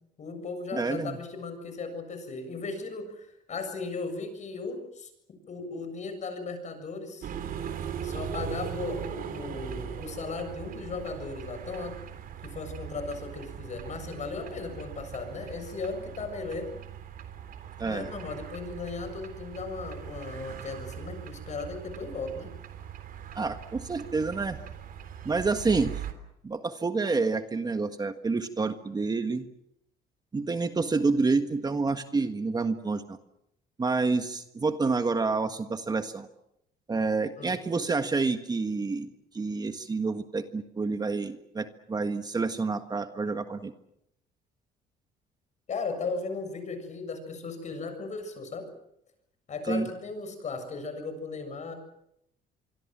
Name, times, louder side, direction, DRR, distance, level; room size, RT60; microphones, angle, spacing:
voice 1, 0.2-5.1 5.5-7.3 8.0-11.9 12.4-16.7 17.8-22.5 37.4-37.6 45.7-48.7 49.5-51.7, left 4 dB, 45° left, 8 dB, 7.2 m, -36 dB
voice 2, 0.7-1.2 17.8-18.1 23.3-24.6 25.2-26.1 26.4-29.4 30.3-33.2 33.8-36.3 36.9-39.1 39.3-43.7 49.7-49.9, right 4 dB, 25° right, 8 dB, 1.6 m, -28 dB
sound 1, 7.2-26.1, right 8 dB, 55° right, 3.5 m, -40 dB
26.0 x 24.0 x 7.5 m, 0.80 s
cardioid pair, 110°, 17 cm